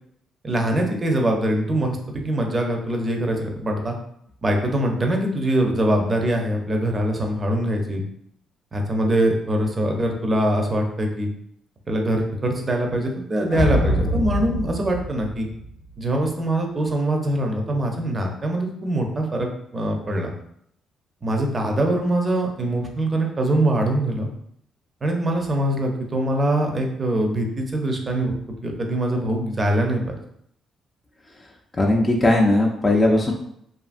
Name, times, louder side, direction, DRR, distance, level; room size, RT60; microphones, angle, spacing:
voice 1, 0.4-4.0 4.4-8.0 8.7-11.3 11.9-15.5 16.0-20.3 21.2-24.3 25.0-28.3 28.6-30.2, right 1 dB, 30° right, 2 dB, 0.5 m, -23 dB
sound 1, 13.5-16.0, left 1 dB, 90° left, 0.4 m, -24 dB
voice 2, 31.8-33.3, left 1 dB, 25° left, 0 dB, 0.4 m, -18 dB
2.7 x 2.4 x 2.5 m, 0.72 s
cardioid pair, 90°, 0 cm